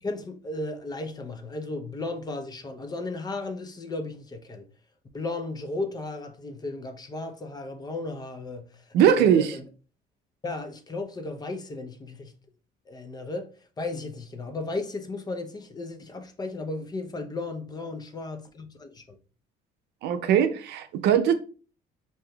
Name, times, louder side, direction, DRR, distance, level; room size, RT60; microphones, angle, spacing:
voice 1, 0.0-4.6 5.1-9.6 10.4-12.3 12.9-13.5 13.8-19.2, left 2 dB, 25° left, 0.6 m, -35 dB
voice 2, 8.9-9.6 20.0-21.3, right 9 dB, 80° right, 0.5 m, -21 dB
4.8 x 2.7 x 2.3 m
cardioid pair, 110°, 17 cm